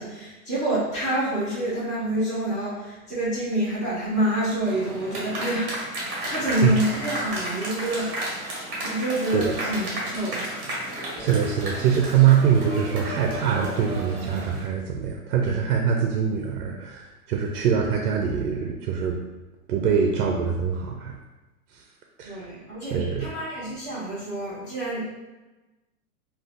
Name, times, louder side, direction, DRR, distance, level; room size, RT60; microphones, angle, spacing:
voice 1, 0.0-8.5 8.8-10.4 22.2-25.1, right 1 dB, 5° left, -22 dB, 0.4 m, -28 dB
sound 1, 4.6-14.6, right 1 dB, 35° right, 1.0 m, -33 dB
voice 2, 11.2-19.2 19.7-21.1 22.2-22.4 22.9-23.3, right 7 dB, 70° right, 1 dB, 0.6 m, -23 dB
3.6 x 2.4 x 2.6 m, 1.1 s
supercardioid pair, 175°, 46 cm